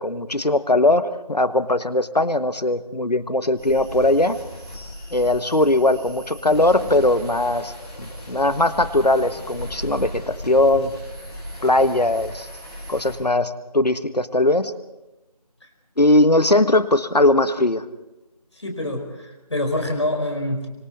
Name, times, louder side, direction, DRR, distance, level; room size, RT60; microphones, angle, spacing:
voice 1, 0.0-4.4 5.1-7.7 8.0-10.9 11.6-12.5 12.9-14.7 16.0-17.8, left 2 dB, 75° left, 12 dB, 1.5 m, -19 dB
sound 1, 3.6-13.2, equal, 5° left, 4.3 m, -36 dB
voice 2, 18.5-20.7, left 1 dB, 45° left, 3 dB, 4.6 m, -26 dB
26.5 x 25.5 x 4.1 m, 0.99 s
figure-of-eight pair, 170°, 21 cm